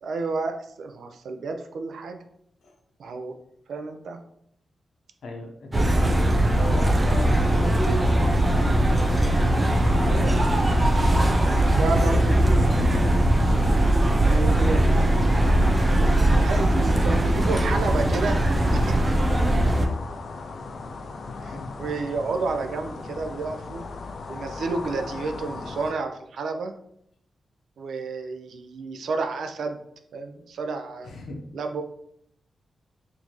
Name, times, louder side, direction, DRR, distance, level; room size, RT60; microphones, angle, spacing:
voice 1, 0.0-2.2 3.0-3.4 3.7-4.2 9.5-10.6 11.1-11.4 11.8-13.0 14.2-15.3 16.3-19.0 21.4-23.9 24.3-26.8 27.8-29.8 30.1-31.2 31.5-31.8, right 3 dB, 80° right, 6 dB, 0.4 m, -31 dB
voice 2, 5.2-7.7 21.2-22.0 31.0-31.4, left 2 dB, 80° left, 2 dB, 0.8 m, -37 dB
sound 1, 5.7-19.9, right 1 dB, 20° right, 0.4 m, -20 dB
sound 2, 7.0-25.9, left 3 dB, 55° left, 0.4 m, -38 dB
4.3 x 2.7 x 3.0 m, 0.71 s
wide cardioid pair, 160°, 0 cm